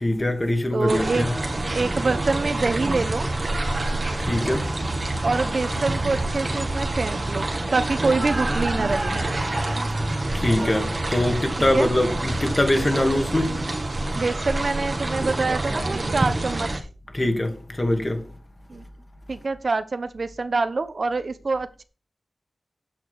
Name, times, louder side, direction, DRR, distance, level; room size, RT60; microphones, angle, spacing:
voice 1, 0.0-1.3 4.2-4.7 10.3-13.6 17.1-18.3, left 1 dB, 30° left, 2.6 m, -23 dB
voice 2, 0.7-1.3 1.7-3.3 5.2-9.1 11.7-11.9 14.1-16.8 18.7-18.8 19.3-21.8, right 3 dB, 60° right, 1.0 m, -25 dB
sound 1, 0.9-16.8, right 2 dB, 40° right, 2.1 m, -27 dB
9.2 x 6.1 x 6.3 m
wide cardioid pair, 60°, 0 cm